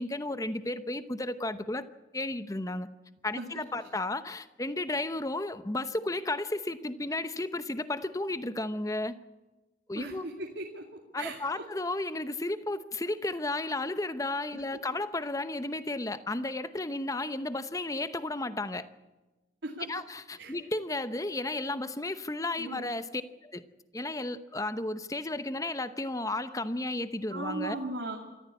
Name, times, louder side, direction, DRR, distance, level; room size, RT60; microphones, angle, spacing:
voice 1, 0.0-1.9 2.1-2.9 3.2-9.2 9.9-10.3 11.1-18.9 19.9-23.6 23.9-27.8, left 2 dB, 20° left, 12 dB, 0.8 m, -33 dB
voice 2, 10.0-10.8 11.2-11.6 19.6-19.9 20.4-20.5 22.6-22.8 27.3-28.2, right 2 dB, 70° right, 0 dB, 2.6 m, -37 dB
26.5 x 14.0 x 8.4 m, 1.1 s
head